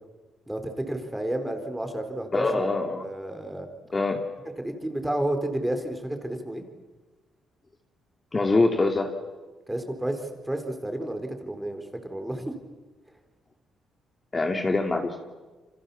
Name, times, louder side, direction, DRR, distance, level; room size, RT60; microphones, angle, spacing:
voice 1, 0.5-2.7 3.0-3.7 4.6-6.6 9.7-12.5, right 1 dB, 10° right, 6 dB, 4.3 m, -31 dB
voice 2, 2.3-3.0 3.9-4.2 8.3-9.1 14.3-15.2, left 3 dB, 25° left, 3 dB, 2.8 m, -24 dB
29.0 x 25.5 x 7.2 m, 1.2 s
cardioid pair, 90°, 0 cm